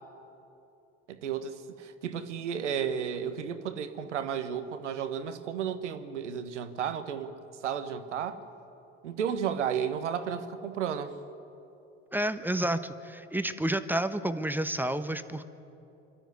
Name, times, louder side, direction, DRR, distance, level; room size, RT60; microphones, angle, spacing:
voice 1, 1.1-7.3 7.6-8.4 9.0-11.1, right 8 dB, 80° right, 10 dB, 1.3 m, -33 dB
voice 2, 12.1-15.4, right 1 dB, 5° right, 10 dB, 1.0 m, -30 dB
25.5 x 12.5 x 9.5 m, 2.9 s
figure-of-eight pair, 65°, 35 cm